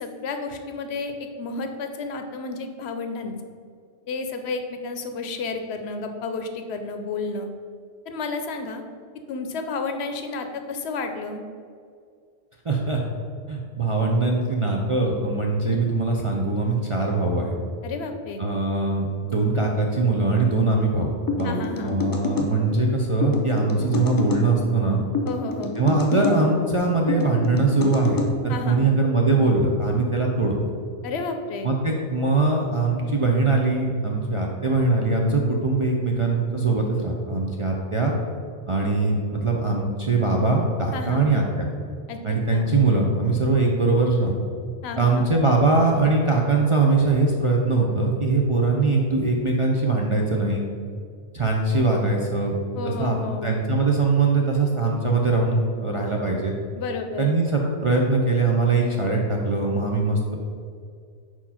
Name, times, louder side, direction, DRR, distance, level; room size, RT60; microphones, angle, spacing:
voice 1, 0.0-3.3 4.1-7.5 8.1-8.8 9.3-11.4 17.8-18.4 21.4-22.1 25.3-25.7 28.5-28.8 31.0-31.7 40.9-41.3 42.1-42.7 44.8-45.2 52.8-53.5 56.8-57.3, left 4 dB, 70° left, 6 dB, 0.9 m, -31 dB
voice 2, 12.6-13.0 13.5-17.6 18.4-25.0 25.8-30.5 31.6-38.1 38.7-41.7 42.2-44.3 45.0-50.6 51.3-52.6 52.8-53.2 53.4-56.5 57.2-60.4, right 3 dB, 45° right, -1 dB, 0.4 m, -22 dB
sound 1, 21.3-22.5 23.2-24.4 25.1-26.4 27.1-28.3, left 3 dB, 35° left, 0.3 m, -27 dB
4.5 x 4.4 x 5.6 m, 2.2 s
omnidirectional pair, 1.1 m